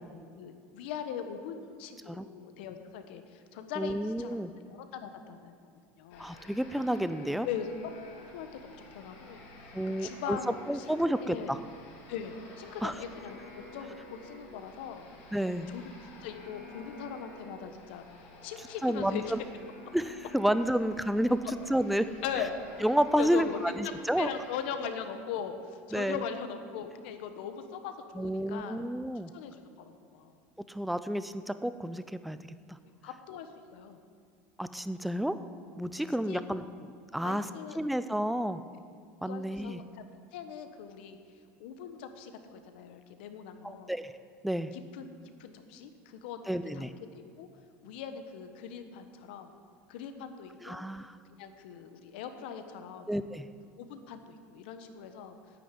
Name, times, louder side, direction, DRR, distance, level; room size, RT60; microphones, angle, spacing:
voice 1, 0.4-4.4 4.7-5.5 6.0-6.3 7.4-10.9 11.2-11.5 12.1-15.3 15.7-15.9 16.2-18.0 18.4-19.3 22.2-22.6 23.2-28.8 29.3-30.3 33.0-34.0 36.3-36.5 37.2-37.8 39.2-39.8 40.3-41.2 41.6-43.9 44.7-45.1 45.4-47.5 47.8-49.5 49.9-50.8 51.4-53.1 53.8-55.4, left 8 dB, 70° left, 8 dB, 1.2 m, -40 dB
voice 2, 3.8-4.5 6.2-7.5 9.7-10.4 10.7-11.6 12.8-12.9 15.3-15.7 18.8-19.4 19.9-21.4 21.7-22.1 22.8-24.3 25.9-26.2 28.1-29.3 30.7-32.4 34.6-35.4 35.8-37.4 37.8-38.6 39.2-39.8 43.6-44.1 44.4-44.7 46.5-46.9 50.6-51.2 53.1-53.5, equal, ahead, 12 dB, 0.3 m, -30 dB
sound 1, 6.1-24.7, left 2 dB, 50° left, 3.9 m, -51 dB
10.0 x 9.5 x 9.2 m, 2.2 s
cardioid pair, 180°, 6 cm